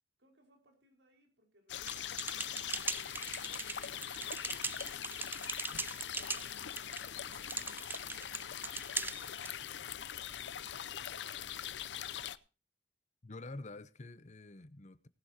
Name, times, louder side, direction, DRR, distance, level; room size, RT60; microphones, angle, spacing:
voice 1, 0.2-7.9 8.8-11.4, right 1 dB, 80° right, 5.0 m, -68 dB
sound 1, 1.7-12.4, left 10 dB, 80° left, 0.6 m, -42 dB
sound 2, 1.8-9.5, right 3 dB, 10° right, 0.5 m, -41 dB
voice 2, 13.2-15.1, left 2 dB, 40° left, 0.9 m, -47 dB
19.0 x 11.5 x 2.8 m
head